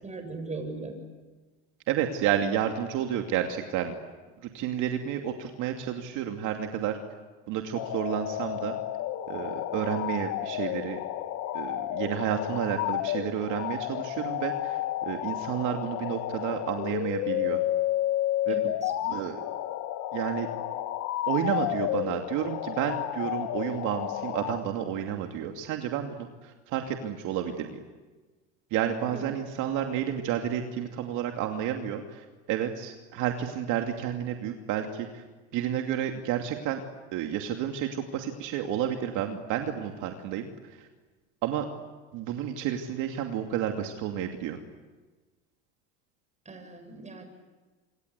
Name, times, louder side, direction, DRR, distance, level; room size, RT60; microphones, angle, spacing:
voice 1, 0.0-1.0 18.5-18.9 29.1-29.2 46.5-47.2, right 3 dB, 20° right, 6 dB, 7.5 m, -39 dB
voice 2, 1.9-3.9 4.4-7.0 7.5-8.8 9.3-11.0 11.5-17.6 18.5-18.6 19.0-19.4 20.1-20.5 21.3-27.8 28.7-35.2 35.5-36.8 37.1-40.9 41.4-41.7 42.1-44.6, right 10 dB, 60° right, 3 dB, 2.7 m, -31 dB
sound 1, 7.7-24.6, left 13 dB, 60° left, 2.5 m, -31 dB
27.0 x 25.5 x 8.4 m, 1.3 s
supercardioid pair, 105°, 34 cm